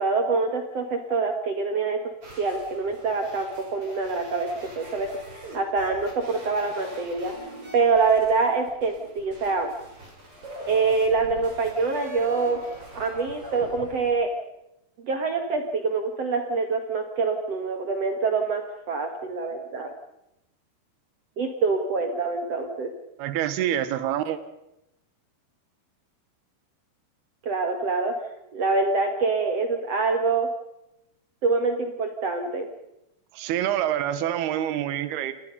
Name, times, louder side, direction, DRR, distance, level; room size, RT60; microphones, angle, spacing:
voice 1, 0.0-2.0 2.4-7.3 7.7-9.7 10.7-12.6 12.9-14.3 15.0-19.9 21.4-22.9 27.4-28.1 28.5-30.5 31.4-32.7, right 4 dB, 55° right, 5 dB, 1.9 m, -25 dB
sound 1, 2.2-14.1, right 1 dB, 35° right, 6.2 m, -43 dB
voice 2, 23.2-24.4 33.3-35.3, right 11 dB, 75° right, 12 dB, 3.1 m, -26 dB
28.5 x 20.0 x 5.5 m, 0.90 s
omnidirectional pair, 4.8 m